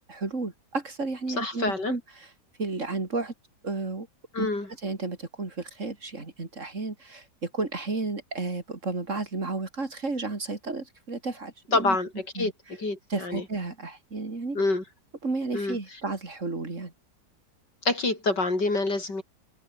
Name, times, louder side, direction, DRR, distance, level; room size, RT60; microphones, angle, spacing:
voice 1, 0.1-2.3 2.6-3.3 3.6-4.1 4.4-4.5 4.8-12.0 12.3-12.5 13.1-14.6 15.2-16.9, right 3 dB, 45° right, 3.4 m, -32 dB
voice 2, 1.4-1.9 4.3-4.7 11.7-13.4 14.5-14.8 15.5-15.8 17.8-19.2, left 2 dB, 80° left, 6.3 m, -27 dB
open air
omnidirectional pair, 1.8 m